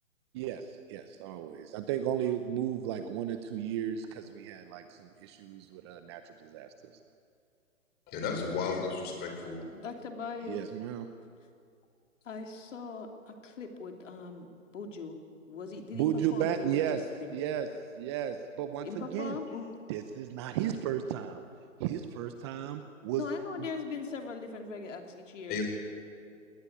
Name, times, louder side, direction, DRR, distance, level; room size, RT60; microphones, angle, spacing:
voice 1, 0.3-6.7 10.5-11.1 15.9-17.0 17.3-17.7 18.0-19.4 19.9-21.4 21.8-23.2 23.6-23.7, right 10 dB, 20° right, 9 dB, 0.7 m, -34 dB
voice 2, 8.1-9.6 25.5-25.6, left 5 dB, 25° left, 3 dB, 4.6 m, -33 dB
voice 3, 9.7-10.6 12.2-14.5 14.7-15.2 15.5-17.4 18.8-19.7 23.2-25.6, left 4 dB, 65° left, 5 dB, 2.9 m, -40 dB
19.5 x 19.0 x 9.7 m, 2.5 s
hypercardioid pair, 140°, 40 cm